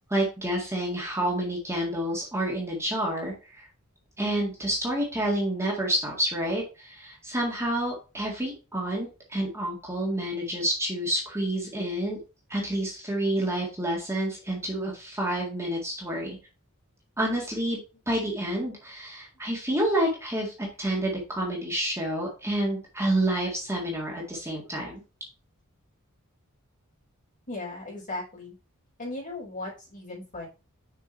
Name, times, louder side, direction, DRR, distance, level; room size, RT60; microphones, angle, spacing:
voice 1, 0.1-3.7 4.2-12.2 12.5-16.4 17.2-25.0, right 1 dB, 15° right, -3 dB, 1.9 m, -29 dB
voice 2, 27.5-28.5 29.0-30.5, left 2 dB, 40° left, -5 dB, 4.5 m, -37 dB
6.5 x 5.3 x 4.4 m, 0.32 s
head